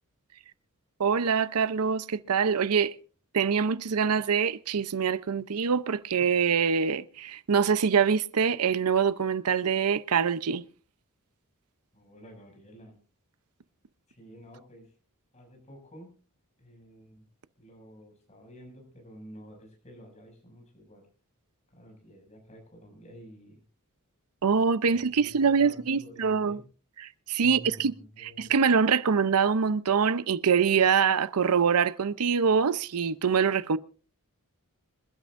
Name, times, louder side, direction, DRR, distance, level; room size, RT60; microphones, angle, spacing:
voice 1, 1.0-3.0 3.3-10.7 24.4-26.6 27.0-33.8, right 6 dB, 80° right, 0.6 m, -24 dB
voice 2, 11.9-13.0 14.1-15.0 15.3-16.1 16.6-17.3 17.6-21.1 21.7-23.6 24.9-26.6 27.4-28.5, equal, 30° left, 6.4 m, -50 dB
26.0 x 12.0 x 2.5 m
head